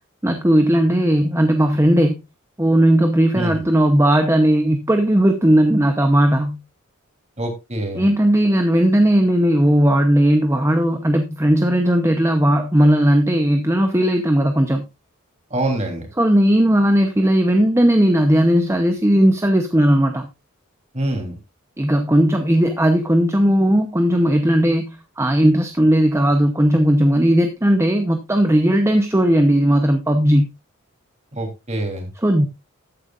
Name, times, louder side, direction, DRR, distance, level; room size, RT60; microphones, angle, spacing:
voice 1, 0.2-2.2 2.6-6.6 8.0-14.9 16.2-20.3 21.8-30.5 32.2-32.5, right 1 dB, 15° right, 6 dB, 0.8 m, -16 dB
voice 2, 7.4-8.0 15.5-16.1 20.9-21.4 31.3-32.1, right 1 dB, 30° right, 3 dB, 3.3 m, -25 dB
13.5 x 9.2 x 2.5 m, 0.25 s
head